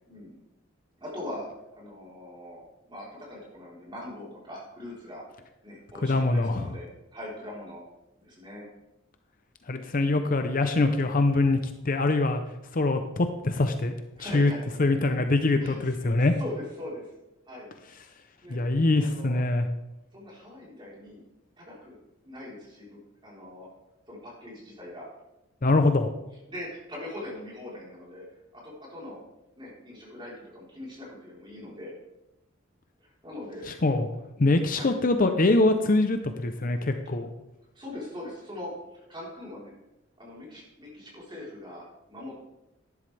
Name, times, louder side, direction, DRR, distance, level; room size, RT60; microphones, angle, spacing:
voice 1, 0.1-0.4 1.0-1.4 1.7-2.6 2.9-5.2 5.6-7.8 8.2-8.7 14.2-14.6 15.6-17.0 17.5-17.7 18.4-18.6 19.0-19.4 20.1-21.2 21.6-22.0 22.2-23.7 24.1-25.1 26.5-28.2 28.5-29.2 29.6-31.9 33.0-33.8 34.7-34.9 37.7-39.7 40.2-42.5, left 1 dB, 25° right, -5 dB, 4.1 m, -41 dB
voice 2, 6.0-6.7 9.7-12.4 12.7-13.9 14.2-14.5 14.8-16.3 18.5-19.7 25.6-26.1 33.7-34.1 34.4-37.3, left 2 dB, 45° left, 7 dB, 0.7 m, -24 dB
11.5 x 11.0 x 3.4 m, 0.93 s
head